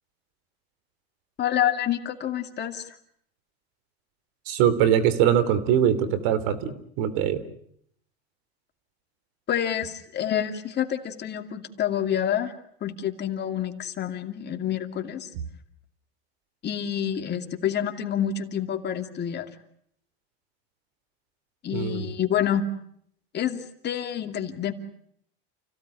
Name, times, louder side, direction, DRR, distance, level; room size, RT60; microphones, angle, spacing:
voice 1, 1.4-3.0 9.5-12.5 12.8-15.3 16.6-19.5 21.6-22.6 23.3-24.7, left 10 dB, 35° left, 6 dB, 2.6 m, -28 dB
voice 2, 4.5-7.4 21.7-22.1, right 9 dB, 65° right, 15 dB, 3.2 m, -22 dB
29.5 x 16.5 x 10.0 m, 0.70 s
supercardioid pair, 125°, 31 cm